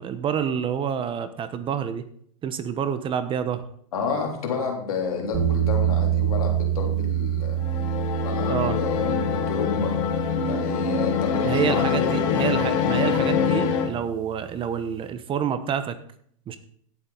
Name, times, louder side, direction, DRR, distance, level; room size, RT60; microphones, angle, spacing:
voice 1, 0.0-2.1 2.4-3.6 8.5-8.8 11.4-16.0 16.5-16.6, right 8 dB, 30° right, 11 dB, 1.1 m, -28 dB
voice 2, 3.9-7.6 8.2-10.0 10.4-12.7, left 5 dB, 80° left, 1 dB, 3.3 m, -30 dB
sound 1, 5.3-14.3, right 11 dB, 55° right, 4.2 m, -28 dB
sound 2, 7.6-13.9, left 7 dB, 55° left, 2.0 m, -25 dB
16.5 x 7.7 x 4.1 m, 0.62 s
hypercardioid pair, 115°, 18 cm